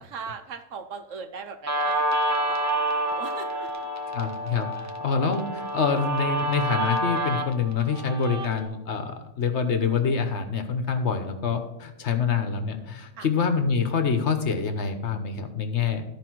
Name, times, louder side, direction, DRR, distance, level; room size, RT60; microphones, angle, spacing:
voice 1, 0.0-2.6 2.9-3.7 13.2-13.3, right 5 dB, 70° right, 7 dB, 1.2 m, -39 dB
Guitar, 1.7-8.7, right 1 dB, 15° right, 0.8 m, -28 dB
voice 2, 4.1-4.7 5.0-16.0, left 5 dB, 60° left, 7 dB, 1.2 m, -26 dB
13.5 x 5.1 x 4.6 m, 0.95 s
omnidirectional pair, 1.4 m